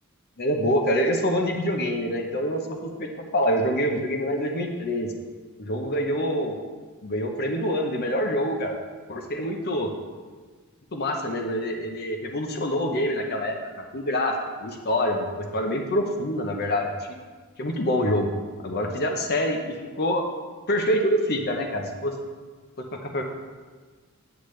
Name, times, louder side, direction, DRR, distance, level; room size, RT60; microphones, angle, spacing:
voice 1, 0.4-5.1 5.6-6.6 7.0-8.8 9.1-9.9 10.9-17.2 17.6-18.3 18.6-20.3 20.7-22.1 23.1-23.2, equal, 45° left, 3 dB, 0.7 m, -26 dB
8.3 x 8.0 x 3.2 m, 1.4 s
head